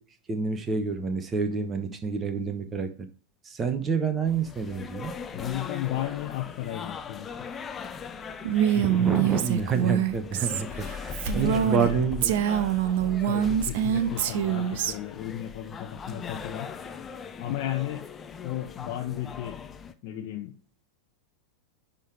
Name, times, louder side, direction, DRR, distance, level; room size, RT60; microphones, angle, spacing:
voice 1, 0.3-2.9 3.4-5.1 8.7-12.4, right 5 dB, 20° right, 9 dB, 1.1 m, -28 dB
sound 1, 4.3-19.9, left 6 dB, 20° left, 0.8 m, -40 dB
voice 2, 5.3-7.5 11.4-12.1 13.2-16.7 17.4-18.1 18.4-19.6 20.0-20.6, left 12 dB, 45° left, 2 dB, 1.0 m, -34 dB
Female speech woman speaking, 8.4-11.9 12.2-14.9, right 10 dB, 50° right, 0.7 m, -25 dB
11.0 x 3.8 x 4.7 m, 0.39 s
figure-of-eight pair, 90°, 0 cm